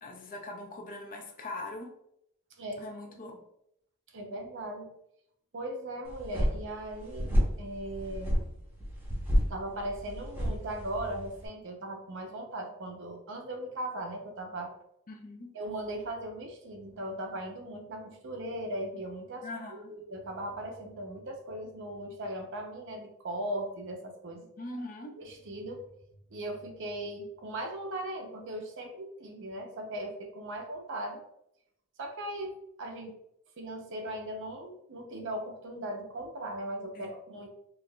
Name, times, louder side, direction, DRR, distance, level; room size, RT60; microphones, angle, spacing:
voice 1, 0.0-1.9 2.8-3.4 15.1-15.5 19.4-19.9 24.6-25.1 36.9-37.1, left 2 dB, 40° left, 3 dB, 0.5 m, -41 dB
voice 2, 4.1-4.9 5.5-8.4 9.5-14.7 15.5-24.5 25.2-25.8 26.3-31.2 32.0-33.2 33.6-37.5, right 1 dB, 60° right, 2 dB, 0.6 m, -38 dB
sound 1, 6.1-11.5, equal, 10° right, 0.7 m, -30 dB
4.5 x 2.5 x 2.2 m, 0.76 s
head